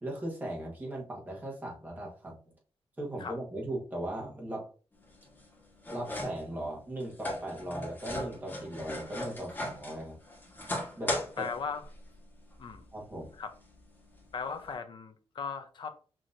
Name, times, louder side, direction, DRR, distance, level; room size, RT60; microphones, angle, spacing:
voice 1, 0.0-2.4 3.0-4.7 5.9-10.2 11.0-11.5 12.9-13.3, right 1 dB, 20° right, -2 dB, 1.3 m, -38 dB
sound 1, 4.9-14.7, left 1 dB, 20° left, 1.3 m, -40 dB
voice 2, 11.4-11.8 12.6-12.9 13.4-13.5 14.3-15.9, left 5 dB, 55° left, 8 dB, 0.6 m, -37 dB
6.0 x 2.9 x 2.6 m, 0.37 s
wide cardioid pair, 160°, 10 cm